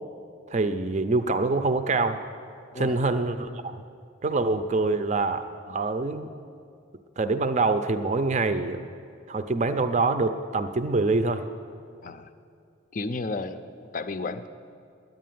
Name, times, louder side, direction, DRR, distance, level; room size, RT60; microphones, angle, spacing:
voice 1, 0.5-2.2 2.7-3.7 4.2-6.3 7.2-8.9 9.3-11.4, right 3 dB, 35° right, 9 dB, 0.5 m, -25 dB
voice 2, 12.9-14.5, left 3 dB, 40° left, 11 dB, 0.5 m, -33 dB
10.0 x 9.3 x 9.2 m, 2.3 s
head